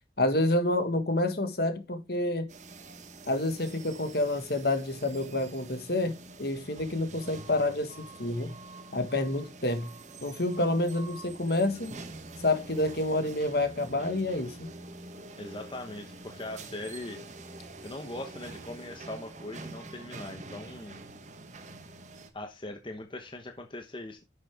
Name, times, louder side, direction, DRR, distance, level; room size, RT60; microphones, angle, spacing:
voice 1, 0.2-2.5 3.2-8.5 8.9-9.9 10.2-11.9 12.4-14.7, left 2 dB, 55° left, 1.6 m, -28 dB
sound 1, 2.5-22.3, right 2 dB, 40° right, 1.2 m, -46 dB
voice 2, 15.4-17.2 17.8-21.0 22.3-24.2, left 1 dB, 25° left, 0.9 m, -40 dB
10.5 x 6.7 x 3.5 m
head